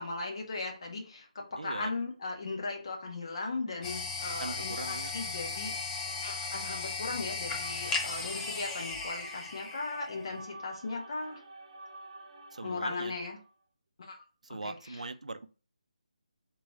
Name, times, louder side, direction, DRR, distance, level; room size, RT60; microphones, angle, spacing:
voice 1, 0.0-5.7 6.2-11.4 12.6-13.4 14.0-14.2 14.6-15.1, left 3 dB, 45° left, 1.4 m, -37 dB
voice 2, 1.6-1.9 4.4-5.1 12.5-13.2 14.4-15.5, right 3 dB, 65° right, 0.4 m, -40 dB
sound 1, 3.8-10.4, left 4 dB, 10° left, 0.4 m, -36 dB
sound 2, 4.1-13.5, right 2 dB, 45° right, 1.5 m, -50 dB
3.7 x 3.1 x 4.6 m
figure-of-eight pair, 150°, 4 cm